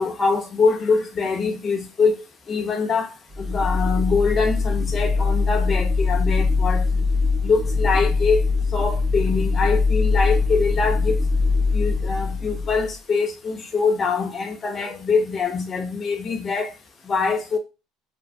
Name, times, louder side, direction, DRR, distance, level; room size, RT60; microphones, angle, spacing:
voice 1, 0.0-2.2 2.5-7.0 7.4-11.2 11.7-16.7 17.1-17.6, left 4 dB, 25° left, 0.5 m, -23 dB
sound 1, 3.3-12.9, left 4 dB, 25° right, 0.4 m, -22 dB
3.0 x 2.1 x 2.5 m
cardioid pair, 150°, 0 cm